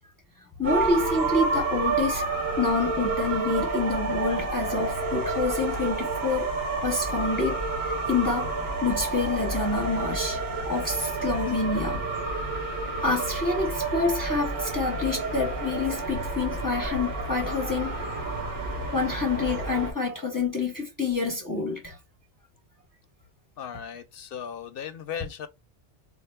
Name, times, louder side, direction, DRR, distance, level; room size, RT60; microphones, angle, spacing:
voice 1, 0.6-2.3 2.6-8.5 8.8-12.1 13.0-18.0 18.9-22.0, left 3 dB, 20° left, 0.7 m, -27 dB
sound 1, 0.6-19.9, right 3 dB, 65° right, 1.7 m, -29 dB
voice 2, 23.6-25.5, left 8 dB, 65° left, 0.7 m, -37 dB
4.3 x 2.4 x 2.2 m
omnidirectional pair, 1.2 m